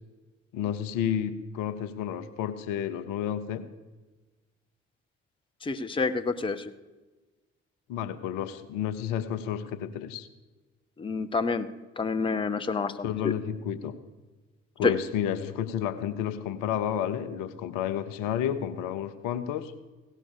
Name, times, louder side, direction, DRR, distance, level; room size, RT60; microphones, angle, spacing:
voice 1, 0.5-3.7 7.9-10.3 13.0-14.0 14.8-19.7, left 9 dB, 65° left, 11 dB, 0.8 m, -31 dB
voice 2, 5.6-6.6 11.0-11.7 12.0-13.3 14.8-14.9, left 4 dB, 15° left, 9 dB, 0.7 m, -28 dB
16.5 x 6.2 x 6.7 m, 1.2 s
figure-of-eight pair, 45°, 35 cm